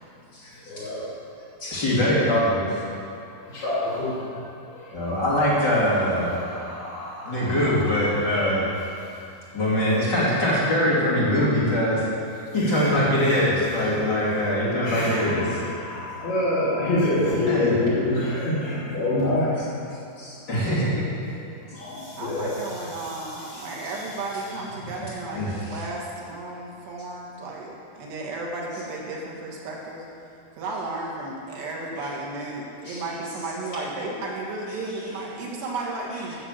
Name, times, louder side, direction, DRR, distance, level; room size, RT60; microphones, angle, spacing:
voice 1, 0.6-1.1 3.3-5.2 6.1-8.2 9.0-9.2 12.6-13.0 13.5-19.8 21.6-23.7, left 1 dB, 75° left, -10 dB, 4.6 m, -28 dB
voice 2, 1.6-2.8 4.9-6.4 7.2-8.7 9.5-12.1 12.3-15.5 17.5-17.7 20.2-21.1 23.5-23.6 25.0-25.1 25.3-25.8 32.8-33.0, equal, 30° left, -8 dB, 2.8 m, -23 dB
voice 3, 22.2-30.0 30.6-36.4, right 2 dB, 90° right, -3 dB, 4.0 m, -33 dB
12.0 x 7.1 x 7.5 m, 2.6 s
omnidirectional pair, 4.6 m